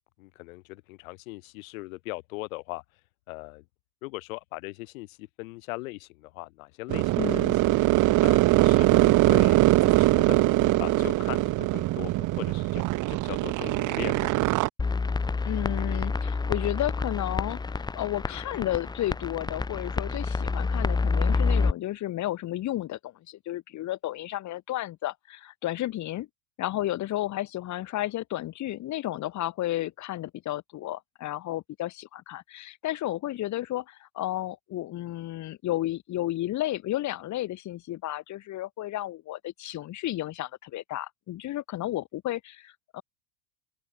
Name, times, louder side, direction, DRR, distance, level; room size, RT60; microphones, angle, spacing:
voice 1, 0.2-2.8 3.3-3.6 4.0-7.1 7.4-7.7 8.2-10.4 10.8-14.3, left 22 dB, 70° left, 4.8 m, -40 dB
sound 1, 6.9-14.7, right 19 dB, 45° right, 2.1 m, -22 dB
voice 2, 7.2-7.6 15.5-26.3 26.6-43.0, left 14 dB, 40° left, 7.9 m, -32 dB
sound 2, 14.8-21.7, left 4 dB, 10° left, 1.2 m, -28 dB
open air
supercardioid pair, 130°, 42 cm